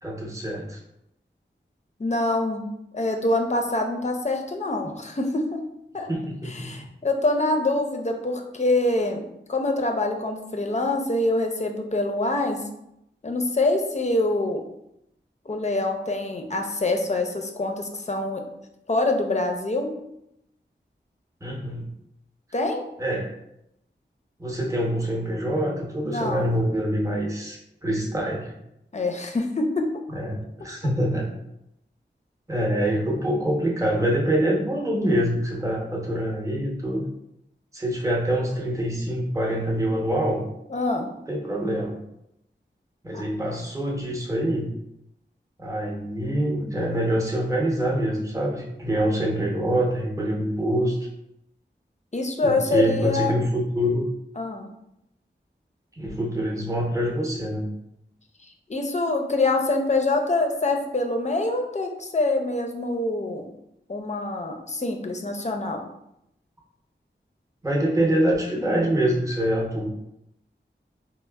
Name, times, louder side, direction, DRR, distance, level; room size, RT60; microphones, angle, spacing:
voice 1, 0.0-0.8 4.8-4.9 6.1-6.9 21.4-21.9 23.0-23.3 24.4-28.5 30.1-31.3 32.5-37.1 37.7-40.4 41.3-42.0 43.0-44.7 45.6-51.0 52.4-54.1 55.9-57.7 67.6-69.9, right 1 dB, 15° right, -2 dB, 0.7 m, -25 dB
voice 2, 2.0-2.6 2.9-5.6 5.9-6.1 6.4-9.2 9.5-12.6 13.2-14.6 15.5-18.4 18.9-19.9 22.5-22.9 26.0-26.5 28.9-29.9 40.7-41.1 43.1-43.2 52.1-53.3 54.4-54.7 58.4-63.5 63.9-65.8, left 2 dB, 35° left, 3 dB, 0.5 m, -25 dB
4.0 x 2.0 x 2.2 m, 0.82 s
wide cardioid pair, 40°, 20 cm